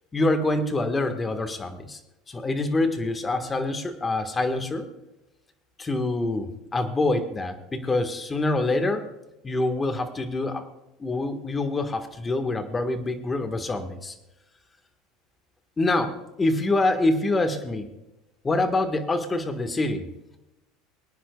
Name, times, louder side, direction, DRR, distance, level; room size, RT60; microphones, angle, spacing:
voice 1, 0.1-2.0 2.3-4.9 5.8-9.1 9.4-10.6 11.0-14.1 15.8-17.8 18.4-20.1, left 2 dB, 20° left, 8 dB, 1.6 m, -25 dB
24.0 x 9.9 x 2.4 m, 0.93 s
supercardioid pair, 115°, 0 cm